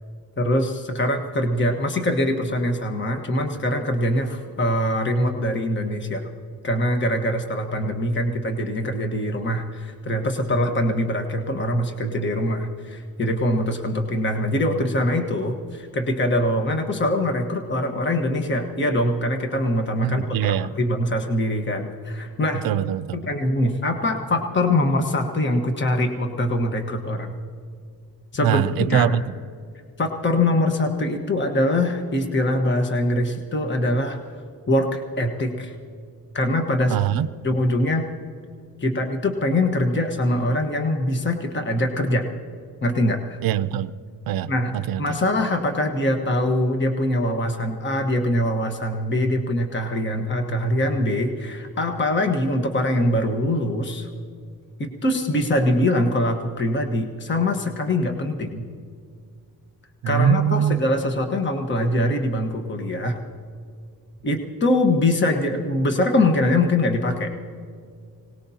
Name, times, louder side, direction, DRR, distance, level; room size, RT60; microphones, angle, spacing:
voice 1, 0.4-6.3 6.6-22.6 23.1-27.3 28.3-29.1 30.0-34.2 34.7-35.7 36.3-37.0 37.4-38.1 38.8-42.3 42.8-43.4 44.5-44.7 45.0-54.1 54.8-58.7 60.1-63.2 64.2-67.3, left 1 dB, 30° left, 4 dB, 1.3 m, -23 dB
voice 2, 20.0-20.7 22.6-23.2 28.4-29.3 36.9-37.3 43.4-43.9 44.3-45.2 60.0-60.8, right 10 dB, 70° right, 13 dB, 0.5 m, -22 dB
25.0 x 19.0 x 2.8 m, 2.2 s
cardioid pair, 125°, 36 cm